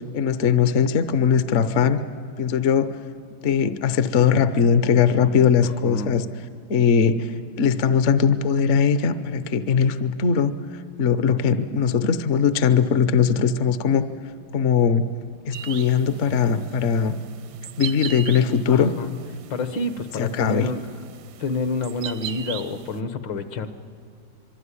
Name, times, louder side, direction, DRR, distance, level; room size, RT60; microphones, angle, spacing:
voice 1, 0.1-2.0 2.4-3.0 3.4-6.3 6.7-14.1 14.5-15.1 15.4-17.2 17.8-18.9 20.2-20.7, left 6 dB, 50° left, 12 dB, 0.9 m, -20 dB
voice 2, 5.6-6.1 18.7-19.1 19.5-20.9 21.4-23.7, left 3 dB, 70° left, 10 dB, 1.9 m, -28 dB
sound 1, 15.5-23.0, right 10 dB, 75° right, 1.6 m, -39 dB
25.0 x 24.0 x 9.8 m, 2.2 s
omnidirectional pair, 2.2 m